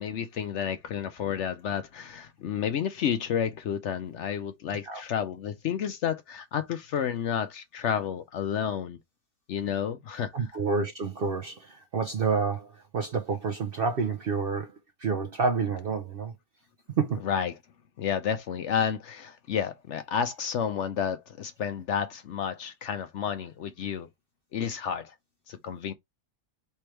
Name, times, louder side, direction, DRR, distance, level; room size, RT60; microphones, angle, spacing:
voice 1, 0.0-9.0 9.5-10.5 17.2-17.5 18.0-24.1 24.5-25.1 25.5-25.9, left 8 dB, 65° left, 0.8 m, -31 dB
voice 2, 10.3-14.7 15.0-16.3 17.0-17.2, right 5 dB, 60° right, 0.6 m, -29 dB
3.4 x 3.2 x 4.4 m
omnidirectional pair, 1.5 m